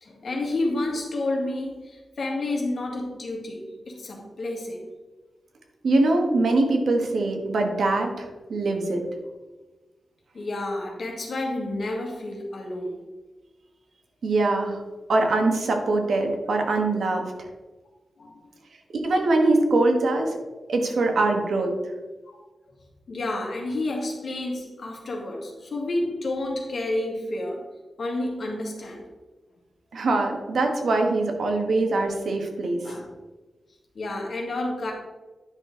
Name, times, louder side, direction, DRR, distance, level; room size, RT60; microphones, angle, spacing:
voice 1, 0.0-4.9 10.3-13.0 18.2-18.4 23.1-27.7 28.0-29.1 32.8-33.1 34.0-34.9, left 2 dB, 55° left, 0 dB, 2.0 m, -30 dB
voice 2, 5.8-9.0 14.2-14.8 15.1-17.5 19.0-20.4 20.7-21.7 29.9-32.8, right 2 dB, 70° right, 3 dB, 1.4 m, -23 dB
9.8 x 6.1 x 3.8 m, 1.2 s
wide cardioid pair, 150°, 0 cm